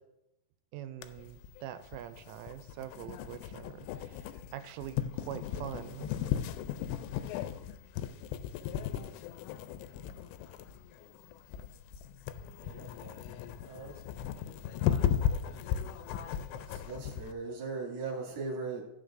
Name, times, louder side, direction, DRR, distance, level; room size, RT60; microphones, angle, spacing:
voice 1, 0.7-6.1, right 11 dB, 85° right, 10 dB, 3.0 m, -44 dB
sound 1, 1.0-17.3, left 9 dB, 85° left, 2.8 m, -36 dB
voice 2, 12.6-13.2 13.6-13.9 14.4-15.1 16.5-18.8, right 4 dB, 45° right, -2 dB, 2.5 m, -40 dB
14.0 x 7.8 x 2.5 m, 0.85 s
omnidirectional pair, 5.6 m